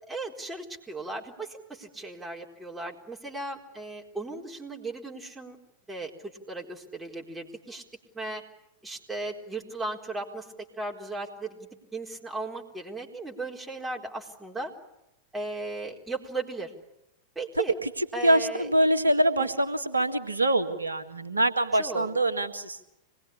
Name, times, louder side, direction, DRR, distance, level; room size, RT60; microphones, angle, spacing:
voice 1, 0.1-5.6 5.9-7.8 8.1-8.4 8.8-10.5 10.8-14.7 15.3-16.7 17.3-17.7 18.1-18.7 19.4-19.5 21.7-22.1, right 3 dB, 5° right, -1 dB, 4.3 m, -36 dB
voice 2, 18.2-22.8, right 1 dB, 80° right, 9 dB, 1.8 m, -24 dB
25.5 x 20.0 x 10.0 m, 0.86 s
figure-of-eight pair, 90°, 0 cm